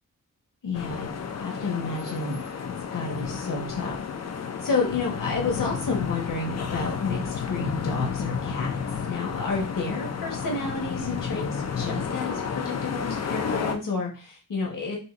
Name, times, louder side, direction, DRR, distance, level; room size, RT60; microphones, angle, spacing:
voice 1, 0.6-1.1 1.4-4.0 4.6-8.8 9.1-15.0, left 3 dB, 75° left, 0 dB, 1.8 m, -30 dB
sound 1, 0.7-13.8, left 6 dB, 50° left, 0.6 m, -31 dB
5.4 x 3.0 x 2.9 m, 0.34 s
wide cardioid pair, 135°, 33 cm